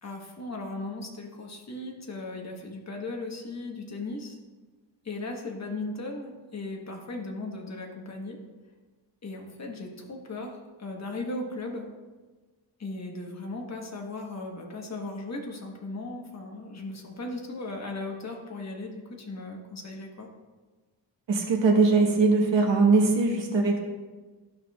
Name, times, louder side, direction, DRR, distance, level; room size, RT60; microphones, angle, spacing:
voice 1, 0.0-4.4 5.0-8.4 9.2-11.9 12.8-20.3, left 2 dB, 35° left, 1 dB, 1.2 m, -37 dB
voice 2, 21.3-23.8, right 3 dB, 75° right, 0 dB, 1.3 m, -21 dB
12.0 x 5.8 x 2.3 m, 1.3 s
wide cardioid pair, 130°, 44 cm